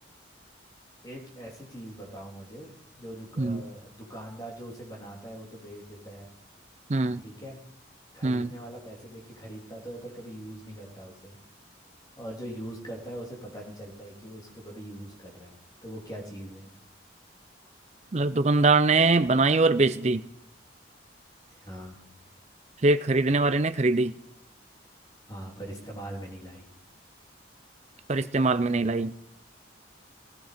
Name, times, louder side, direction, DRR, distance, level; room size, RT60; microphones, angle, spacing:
voice 1, 1.0-6.3 7.2-7.6 8.1-11.4 12.2-16.7 21.5-22.0 25.3-26.6, right 1 dB, 20° left, -1 dB, 3.4 m, -42 dB
voice 2, 6.9-7.2 8.2-8.5 18.1-20.2 22.8-24.1 28.1-29.1, right 3 dB, 35° right, 12 dB, 0.5 m, -22 dB
16.0 x 14.5 x 5.1 m, 0.78 s
head